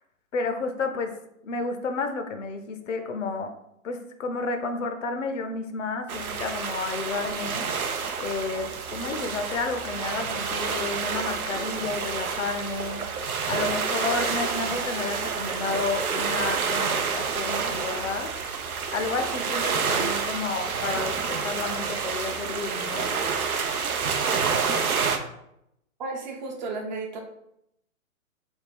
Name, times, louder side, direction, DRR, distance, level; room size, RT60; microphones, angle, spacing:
voice 1, 0.3-1.1 1.4-3.5 3.8-7.7 8.2-13.0 13.5-18.5 18.9-23.1, left 4 dB, 60° left, 6 dB, 0.6 m, -31 dB
sound 1, 6.1-25.2, right 5 dB, 85° right, 0.6 m, -28 dB
voice 2, 26.0-27.2, right 3 dB, 35° right, 1 dB, 0.6 m, -33 dB
3.6 x 2.2 x 4.4 m, 0.79 s
figure-of-eight pair, 130°, 42 cm